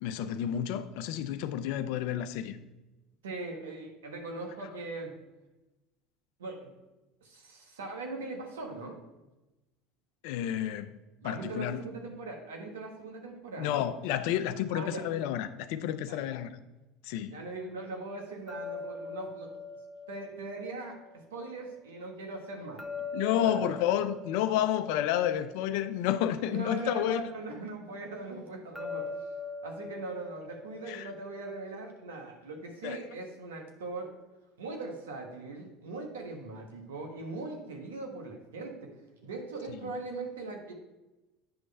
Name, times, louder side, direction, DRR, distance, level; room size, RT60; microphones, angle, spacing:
voice 1, 0.0-2.6 10.2-10.9 11.2-11.8 13.6-16.5 17.0-17.4 23.1-27.3 30.9-31.1 32.8-33.0 39.8-39.9, left 11 dB, 70° left, 0.5 m, -30 dB
voice 2, 3.2-5.1 6.4-6.7 7.2-9.0 11.2-13.9 14.7-15.0 16.0-16.3 17.3-19.5 20.1-22.9 23.4-23.7 26.5-29.1 29.6-34.1 34.6-38.9 39.2-40.7, right 3 dB, 90° right, 1.3 m, -40 dB
sound 1, 18.5-21.6 22.8-26.3 28.8-31.8, left 3 dB, 5° left, 0.7 m, -42 dB
8.7 x 3.2 x 5.4 m
hypercardioid pair, 85°, 0 cm